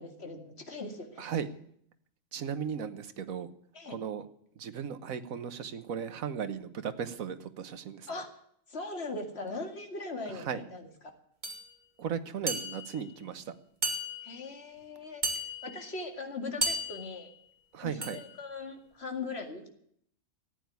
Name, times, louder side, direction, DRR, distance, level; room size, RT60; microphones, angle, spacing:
voice 1, 0.0-1.3 3.7-4.0 8.1-8.3 8.7-10.9 14.2-15.2 15.6-17.3 17.8-19.6, left 3 dB, 50° left, 5 dB, 2.5 m, -40 dB
voice 2, 1.2-1.5 2.3-3.5 3.9-4.3 4.6-8.1 10.3-10.6 12.0-13.5 17.7-18.2, right 7 dB, 80° right, 10 dB, 1.4 m, -36 dB
sound 1, 11.4-11.6 12.5-13.0 13.8-14.5 15.2-15.9 16.6-17.2 18.0-18.4, right 1 dB, 35° right, 2.5 m, -34 dB
14.0 x 9.0 x 9.4 m, 0.67 s
omnidirectional pair, 1.4 m